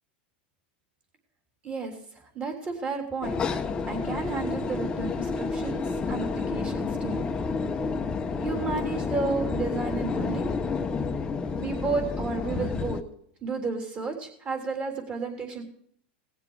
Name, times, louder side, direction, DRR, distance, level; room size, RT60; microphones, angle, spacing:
voice 1, 1.6-1.9 2.3-3.4 3.9-7.2 8.4-10.5 11.6-13.0 13.4-15.6, right 4 dB, 25° right, 3 dB, 3.4 m, -32 dB
sound 1, 3.2-13.0, left 4 dB, 15° left, 0.9 m, -30 dB
18.5 x 7.5 x 4.8 m, 0.65 s
supercardioid pair, 140°, 5 cm